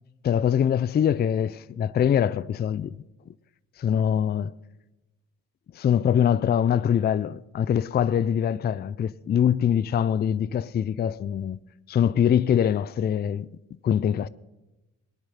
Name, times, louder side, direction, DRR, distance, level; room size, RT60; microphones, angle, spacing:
voice 1, 0.2-3.0 3.3-3.4 3.8-4.5 5.7-11.6 11.9-13.5 13.8-14.3, left 9 dB, 35° left, 0.4 m, -23 dB
19.0 x 10.5 x 5.7 m
cardioid pair, 90°, 30 cm